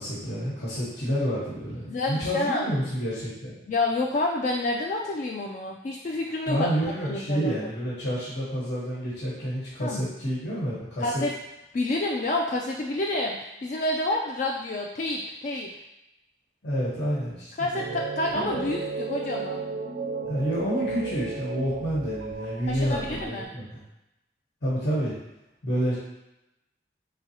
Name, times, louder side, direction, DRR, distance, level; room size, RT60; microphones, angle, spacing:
voice 1, 0.0-3.6 6.5-11.2 16.6-17.7 18.4-18.7 20.3-23.8 24.6-25.1 25.6-25.9, equal, 80° left, -8 dB, 1.2 m, -29 dB
voice 2, 1.9-2.7 3.7-6.7 7.1-7.5 9.8-10.0 11.0-11.3 11.7-15.7 17.6-19.7 22.7-23.5, left 2 dB, 45° left, -1 dB, 0.3 m, -28 dB
sound 1, 17.7-23.4, right 4 dB, 75° right, 0.5 m, -34 dB
3.9 x 3.8 x 2.8 m, 0.91 s
head